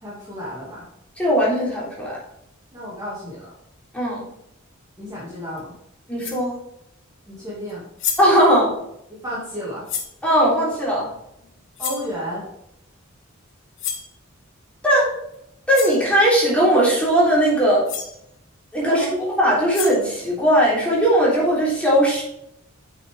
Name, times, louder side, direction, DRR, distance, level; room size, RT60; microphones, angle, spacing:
voice 1, 0.0-0.8 2.7-3.4 5.0-5.8 7.3-7.8 9.1-9.8 11.8-12.5 18.8-19.1, equal, 20° right, -7 dB, 2.3 m, -32 dB
voice 2, 1.2-2.2 3.9-4.2 6.1-6.5 8.2-8.7 10.2-11.1 14.8-15.1 15.7-17.9 18.7-22.2, equal, 5° left, -7 dB, 3.5 m, -18 dB
sound 1, 5.6-5.7 6.2-6.5 7.7-7.8 8.0-8.4 9.9-10.2 11.8-12.1 13.8-14.1 15.3-15.4 15.7-16.0 17.6-17.7 17.9-18.2 19.5-20.2, left 7 dB, 65° left, 1.4 m, -30 dB
8.9 x 6.2 x 3.5 m, 0.77 s
head